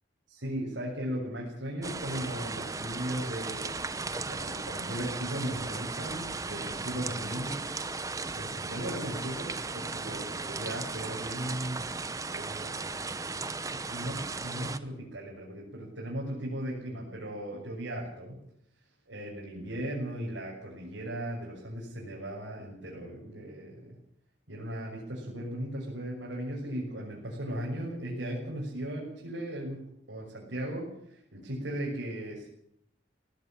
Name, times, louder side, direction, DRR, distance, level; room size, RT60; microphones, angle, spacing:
voice 1, 0.3-7.6 8.3-11.9 12.3-12.9 13.7-18.5 19.1-23.9 24.5-32.5, right 1 dB, 85° right, -4 dB, 6.5 m, -37 dB
sound 1, 1.8-14.8, right 3 dB, 20° right, 0.8 m, -36 dB
18.5 x 16.5 x 8.9 m, 0.72 s
head